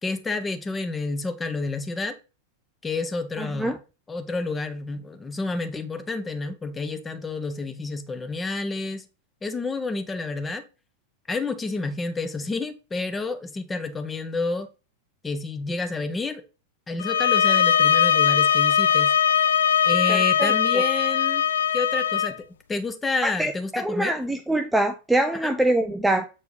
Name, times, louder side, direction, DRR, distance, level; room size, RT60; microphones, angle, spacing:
voice 1, 0.0-2.1 2.8-3.8 4.1-9.0 9.4-10.6 11.3-14.7 15.2-16.4 16.9-19.2 19.8-21.4 21.7-22.4 22.7-24.1 25.4-25.5, left 3 dB, 15° left, 1.0 m, -29 dB
voice 2, 3.4-3.8 20.1-20.5 23.2-26.2, right 1 dB, 5° right, 0.6 m, -24 dB
sound 1, 17.0-22.3, left 8 dB, 65° left, 0.4 m, -20 dB
7.9 x 4.6 x 3.2 m
figure-of-eight pair, 90°, 0 cm